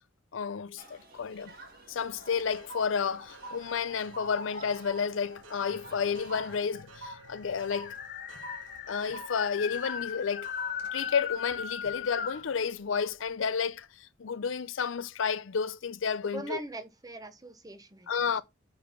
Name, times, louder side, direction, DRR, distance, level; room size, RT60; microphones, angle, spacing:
voice 1, 0.3-1.5 1.9-7.9 8.9-10.5 10.9-16.6 18.1-18.4, left 6 dB, 80° left, 0.5 m, -31 dB
Human group actions, 0.8-6.6, right 2 dB, 50° right, 1.6 m, -52 dB
sound 1, 1.1-1.7 2.0-12.5 13.0-13.3, right 1 dB, 75° right, 1.1 m, -48 dB
sound 2, 2.5-3.8 4.3-5.0 6.0-6.1 6.3-6.4 6.8-12.5, left 8 dB, 50° left, 0.9 m, -38 dB
voice 2, 16.3-18.4, right 2 dB, 20° right, 0.8 m, -41 dB
8.8 x 3.4 x 5.2 m
head